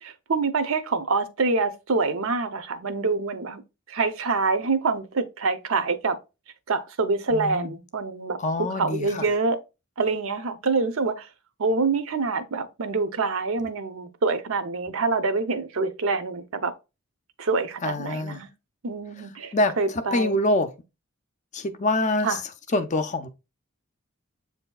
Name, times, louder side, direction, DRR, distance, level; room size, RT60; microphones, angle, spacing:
voice 1, 0.0-3.6 3.9-6.2 6.7-8.4 8.8-9.6 10.0-11.3 11.6-16.7 17.4-18.5 18.8-20.4 22.2-22.4, right 4 dB, 70° right, 0.6 m, -26 dB
voice 2, 7.3-7.7 8.4-9.3 17.8-18.4 19.5-20.7 21.5-22.4 22.7-23.3, left 2 dB, 35° left, 0.5 m, -25 dB
7.7 x 2.7 x 2.2 m
head